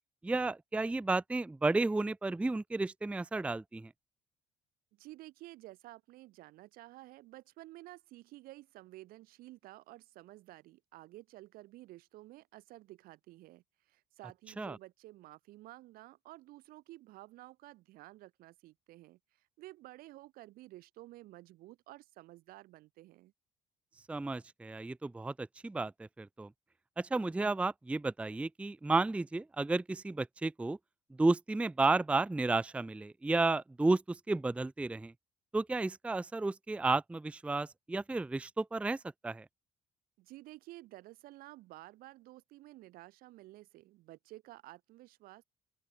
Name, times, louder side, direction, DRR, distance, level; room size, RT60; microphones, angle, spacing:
voice 1, 0.2-3.9 14.6-14.8 24.1-26.5 27.0-30.8 31.2-35.1 35.5-39.5, right 3 dB, 5° right, 0.4 m, -32 dB
voice 2, 4.9-23.3 40.2-45.4, right 17 dB, 60° right, 1.9 m, -53 dB
open air
figure-of-eight pair, 50°, 17 cm